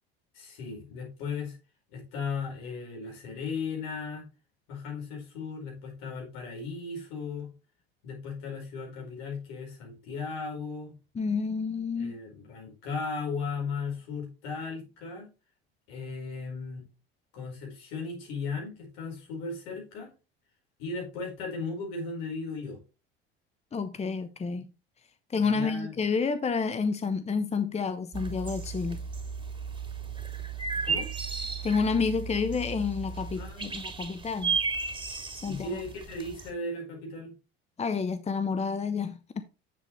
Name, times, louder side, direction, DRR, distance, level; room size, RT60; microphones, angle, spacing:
voice 1, 0.3-1.6 1.9-4.3 4.7-7.5 8.0-10.9 12.0-15.3 15.9-16.8 17.3-20.1 20.8-22.8 25.4-25.9 30.8-31.1 33.4-33.9 35.5-37.3, left 4 dB, 70° left, 4.8 m, -36 dB
voice 2, 11.1-12.1 23.7-24.7 25.3-29.0 31.6-34.6 35.4-35.8 37.8-39.4, left 5 dB, 20° left, 0.9 m, -29 dB
sound 1, 28.1-36.5, right 5 dB, 15° right, 2.9 m, -34 dB
8.1 x 7.4 x 3.2 m
hypercardioid pair, 70°, 31 cm